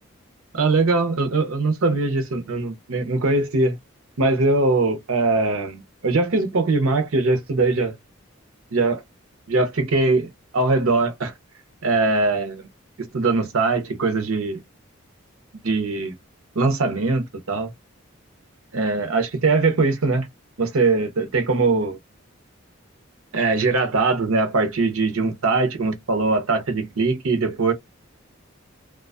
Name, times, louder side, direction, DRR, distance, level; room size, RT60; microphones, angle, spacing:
voice 1, 0.5-3.8 4.2-7.9 8.7-9.0 9.5-10.3 10.5-11.3 11.8-12.7 13.0-14.6 15.6-16.2 16.5-17.7 18.7-20.3 20.6-22.0 23.3-27.7, right 3 dB, 80° right, 0.7 m, -21 dB
2.4 x 2.2 x 2.3 m
head